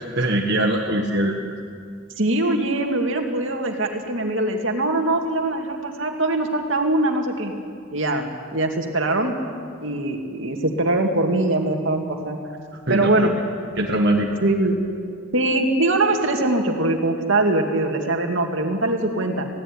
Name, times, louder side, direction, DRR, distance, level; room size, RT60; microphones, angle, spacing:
voice 1, 0.0-1.3 12.9-13.3 13.8-14.3, right 1 dB, 55° right, -1 dB, 1.7 m, -21 dB
voice 2, 2.2-7.5 7.9-8.3 8.5-9.4 9.8-12.4 12.9-13.3 14.4-14.8 15.3-19.5, right 2 dB, 70° right, 3 dB, 2.4 m, -22 dB
19.5 x 17.0 x 9.9 m, 2.2 s
head